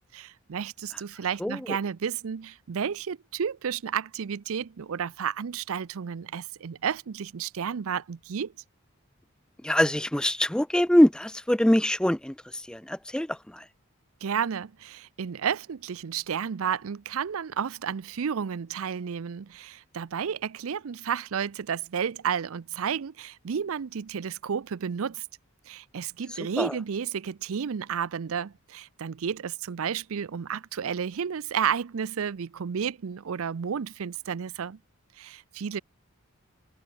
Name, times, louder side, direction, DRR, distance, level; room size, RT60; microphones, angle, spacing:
voice 1, 0.1-8.5 14.2-25.3 25.7-34.8 35.2-35.8, right 7 dB, 70° right, 0.5 m, -32 dB
voice 2, 9.6-13.6 26.6-26.7, equal, 5° left, 0.4 m, -24 dB
head